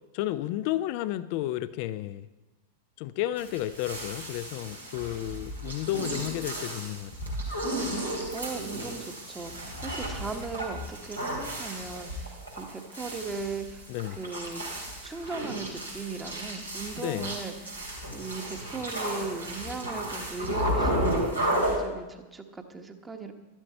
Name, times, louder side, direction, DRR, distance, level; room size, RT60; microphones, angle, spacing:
voice 1, 0.1-2.3 3.0-7.1 13.9-14.2 17.0-17.3, left 14 dB, 45° left, 16 dB, 0.4 m, -32 dB
sound 1, 3.4-21.7, right 1 dB, 90° right, 3.1 m, -33 dB
voice 2, 8.3-13.8 14.1-14.6 15.0-17.8 18.1-23.3, right 4 dB, 15° right, 5 dB, 1.1 m, -38 dB
12.5 x 11.5 x 4.4 m, 1.1 s
figure-of-eight pair, 90°, 0 cm